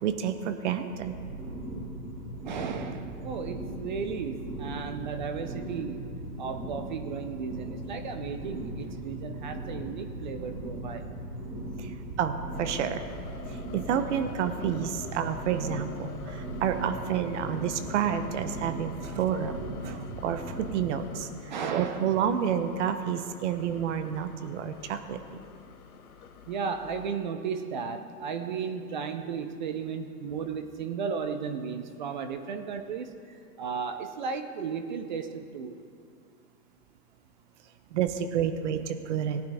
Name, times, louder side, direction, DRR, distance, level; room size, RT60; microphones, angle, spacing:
voice 1, 0.0-1.1 11.8-11.9 12.2-13.0 13.7-19.6 19.8-21.3 21.7-25.4 37.9-39.4, right 8 dB, 45° right, 9 dB, 1.0 m, -29 dB
sound 1, 0.9-20.9, right 1 dB, 85° right, 3.5 m, -38 dB
voice 2, 2.4-6.1 6.4-11.1 21.5-22.0 26.5-35.8, right 6 dB, 30° right, 8 dB, 0.5 m, -35 dB
sound 2, 12.5-27.1, left 7 dB, 65° left, 1.2 m, -48 dB
18.5 x 9.6 x 3.6 m, 2.3 s
hypercardioid pair, 140°, 48 cm